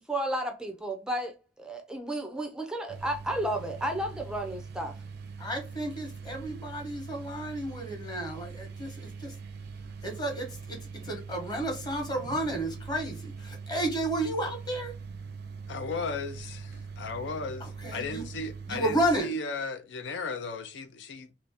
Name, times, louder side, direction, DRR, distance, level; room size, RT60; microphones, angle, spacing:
voice 1, 0.1-5.0, right 1 dB, 5° right, 0.4 m, -32 dB
sound 1, 2.9-19.2, right 5 dB, 65° right, 0.5 m, -42 dB
voice 2, 5.4-9.3 10.0-14.9 17.6-18.2 18.7-19.4, right 1 dB, 25° left, 1.1 m, -32 dB
voice 3, 15.7-21.3, left 3 dB, 75° left, 0.4 m, -36 dB
3.0 x 2.7 x 3.4 m
head